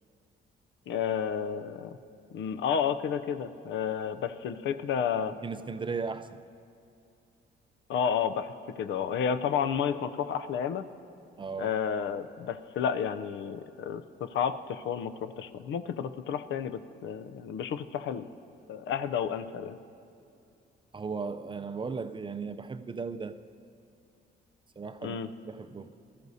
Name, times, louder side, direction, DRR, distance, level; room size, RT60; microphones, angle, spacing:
voice 1, 0.9-2.0 2.3-5.4 7.9-10.8 11.6-18.3 18.7-19.8 25.0-25.3, left 7 dB, 70° left, 0.5 m, -31 dB
voice 2, 5.4-6.4 11.4-11.7 20.9-23.4 24.8-25.2 25.4-25.9, right 5 dB, 25° right, 0.4 m, -36 dB
19.5 x 13.0 x 2.7 m
cardioid pair, 90°, 20 cm